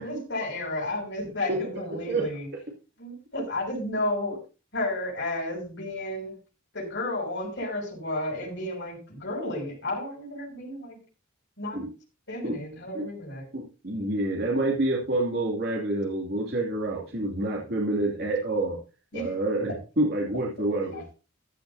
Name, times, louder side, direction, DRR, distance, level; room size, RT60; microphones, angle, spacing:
voice 1, 0.0-2.5 3.0-4.4 4.7-6.4 6.7-11.0 11.6-11.8 12.3-13.4 19.1-19.4 20.9-21.0, left 1 dB, 60° left, -2 dB, 6.3 m, -32 dB
voice 2, 1.9-2.3 11.7-11.9 12.4-12.5 12.9-13.1 13.5-18.8 19.1-21.0, right 2 dB, 55° right, -2 dB, 2.7 m, -28 dB
14.0 x 12.5 x 2.8 m, 0.32 s
head